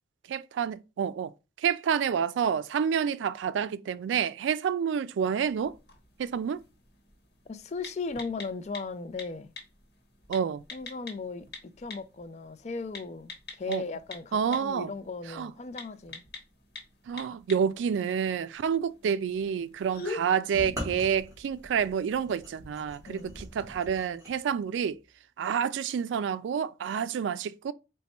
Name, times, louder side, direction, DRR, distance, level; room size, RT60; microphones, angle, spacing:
voice 1, 0.3-1.3 1.6-5.7 6.2-6.6 10.3-10.6 13.7-13.8 14.3-14.9 15.3-15.5 17.1-25.0 25.4-27.7, right 7 dB, 90° right, 0.3 m, -29 dB
sound 1, 5.5-23.7, left 3 dB, 65° left, 1.1 m, -47 dB
voice 2, 7.5-9.5 10.7-16.2 23.1-23.3, left 4 dB, 40° left, 0.3 m, -37 dB
sound 2, 20.5-24.3, equal, 15° right, 1.3 m, -41 dB
4.1 x 2.2 x 4.2 m
head